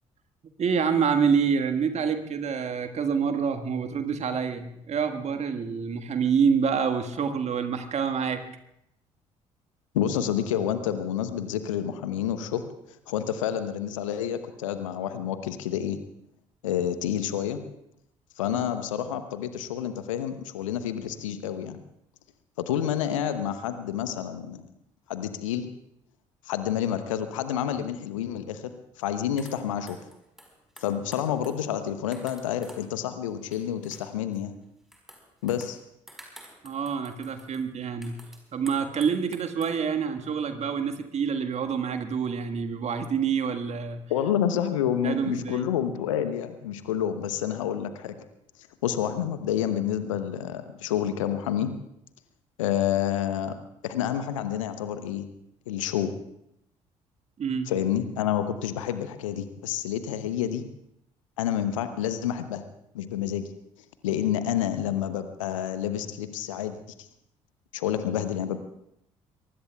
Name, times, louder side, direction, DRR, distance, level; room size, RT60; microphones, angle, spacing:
voice 1, 0.6-8.4 18.5-18.6 36.6-38.2 38.5-44.0 45.0-45.6 57.4-57.7, right 6 dB, 40° right, 7 dB, 1.6 m, -27 dB
voice 2, 9.9-12.6 12.9-16.0 16.6-17.6 18.4-21.8 22.6-24.6 25.1-25.7 26.5-28.7 29.0-30.0 30.8-34.5 35.4-35.8 44.1-48.1 48.8-51.7 52.6-53.6 53.8-55.3 55.7-56.1 57.7-60.6 61.4-62.6 62.9-63.5 64.0-67.1 67.7-68.6, left 10 dB, 75° left, 10 dB, 1.0 m, -29 dB
sound 1, 29.0-29.1 29.4-32.9 33.3-34.4 34.9-39.7, equal, ahead, 4.5 m, -51 dB
23.5 x 22.5 x 2.3 m, 0.79 s
figure-of-eight pair, 50°, 17 cm